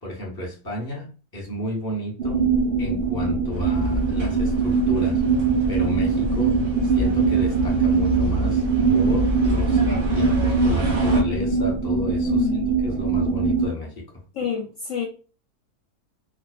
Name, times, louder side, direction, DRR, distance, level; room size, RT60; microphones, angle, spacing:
voice 1, 0.0-2.5 2.8-5.2 5.7-8.6 8.9-12.5 12.8-14.1, left 1 dB, 20° left, 0.8 m, -32 dB
sound 1, 2.2-13.7, right 4 dB, 80° right, 0.5 m, -22 dB
sound 2, 3.5-11.2, right 2 dB, 45° right, 0.8 m, -28 dB
voice 2, 12.2-12.7 14.3-15.1, left 9 dB, 65° left, 0.8 m, -27 dB
2.4 x 2.4 x 2.3 m
omnidirectional pair, 1.6 m